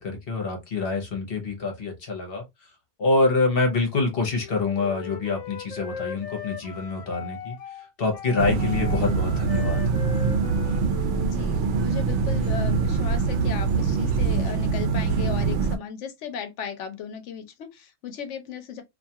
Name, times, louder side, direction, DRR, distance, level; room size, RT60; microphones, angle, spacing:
voice 1, 0.0-2.4 3.0-7.6 8.0-9.8, left 3 dB, 55° left, 1.0 m, -26 dB
Wind instrument woodwind instrument, 4.3-11.7, left 8 dB, 70° left, 0.3 m, -39 dB
sound 1, 8.4-15.8, right 5 dB, 80° right, 0.9 m, -24 dB
voice 2, 11.2-18.8, left 7 dB, 90° left, 0.9 m, -36 dB
2.5 x 2.3 x 2.7 m
omnidirectional pair, 1.2 m